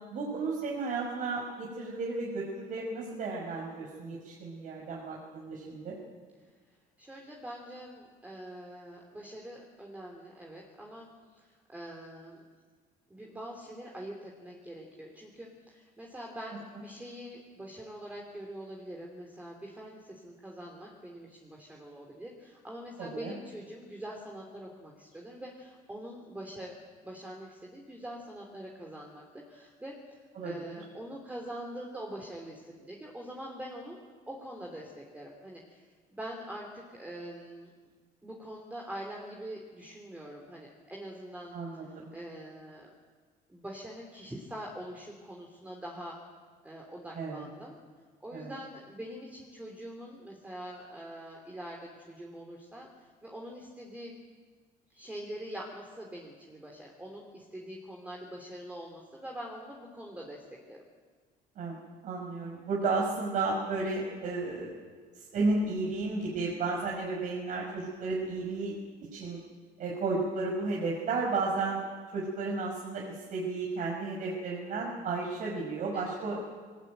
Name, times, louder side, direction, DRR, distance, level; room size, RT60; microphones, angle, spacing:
voice 1, 0.1-5.9 23.0-23.3 30.3-30.8 41.5-42.1 47.1-47.5 48.3-48.5 61.5-64.8 65.1-68.8 69.1-69.4 69.8-71.9 72.1-76.4, right 3 dB, 55° right, -2 dB, 5.1 m, -33 dB
voice 2, 7.0-12.4 13.1-26.8 27.0-34.0 34.3-35.8 36.1-37.7 38.2-42.9 43.5-46.2 46.6-47.8 48.2-54.2 54.9-60.8 75.9-76.2, right 1 dB, 10° right, -1 dB, 3.3 m, -44 dB
22.0 x 19.5 x 9.2 m, 1.5 s
cardioid pair, 125°, 16 cm